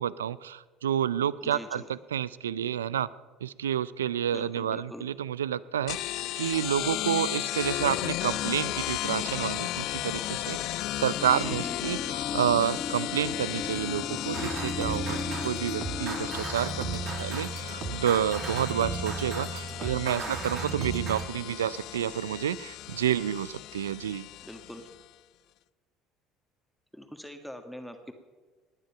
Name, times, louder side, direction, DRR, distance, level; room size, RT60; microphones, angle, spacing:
voice 1, 0.0-3.1 3.4-15.2 15.4-24.3, right 10 dB, 90° right, 19 dB, 0.4 m, -29 dB
voice 2, 1.4-1.9 4.3-5.0 11.3-11.8 19.7-20.4 24.4-24.9 26.9-28.1, equal, ahead, 6 dB, 1.7 m, -43 dB
sound 1, 5.9-25.0, left 16 dB, 65° left, 0.4 m, -35 dB
sound 2, 11.2-16.4, left 5 dB, 30° left, 0.9 m, -37 dB
sound 3, 14.3-21.3, right 5 dB, 50° right, 1.9 m, -35 dB
19.0 x 10.0 x 5.8 m, 1.4 s
hypercardioid pair, 65°, 0 cm